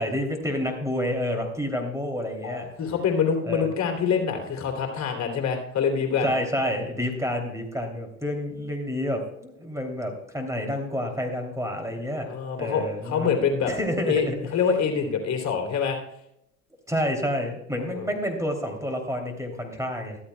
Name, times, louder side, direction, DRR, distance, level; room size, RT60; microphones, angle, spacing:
voice 1, 0.0-2.7 3.4-3.7 6.2-12.3 12.6-13.3 13.7-14.4 16.9-20.2, equal, 10° right, 3 dB, 2.9 m, -29 dB
voice 2, 2.4-6.3 12.3-13.7 14.1-16.0 17.8-18.1, left 6 dB, 40° left, 3 dB, 3.1 m, -25 dB
14.5 x 13.5 x 2.3 m, 0.77 s
hypercardioid pair, 75°, 40 cm